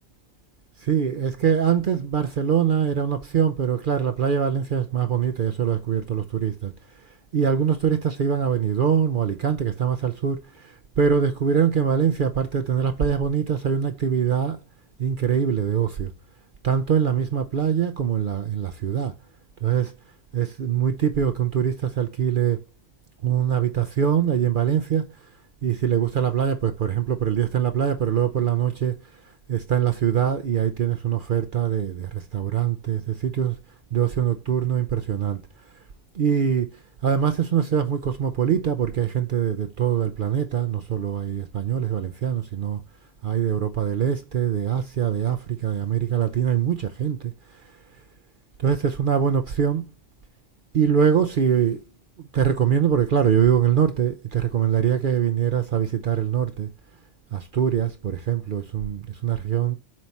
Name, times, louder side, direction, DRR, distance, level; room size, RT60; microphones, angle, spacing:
voice 1, 0.8-6.7 7.3-14.6 15.0-16.1 16.6-19.1 19.6-19.9 20.3-22.6 23.2-25.1 25.6-29.0 29.5-33.6 33.9-35.4 36.1-36.7 37.0-42.8 43.2-47.3 48.6-49.9 50.7-51.8 52.2-56.7 57.3-59.8, right 8 dB, 60° right, 0.8 m, -23 dB
7.5 x 4.7 x 4.1 m
omnidirectional pair, 1.0 m